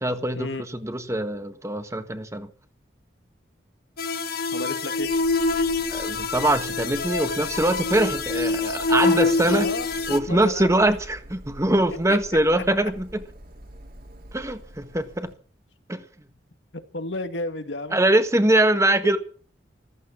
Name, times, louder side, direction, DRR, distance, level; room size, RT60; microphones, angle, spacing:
voice 1, 0.0-0.5 0.8-2.5 5.9-9.7 10.1-13.2 14.3-15.3 15.9-16.0 17.9-19.2, right 1 dB, 15° right, 1.5 m, -23 dB
sound 1, 4.0-10.2, left 3 dB, 55° left, 1.5 m, -25 dB
voice 2, 4.5-5.1 9.5-10.8 12.1-12.2 16.9-18.0, left 2 dB, 80° left, 2.0 m, -32 dB
Printer, 5.0-15.3, equal, 55° right, 3.7 m, -44 dB
15.0 x 14.0 x 6.0 m
head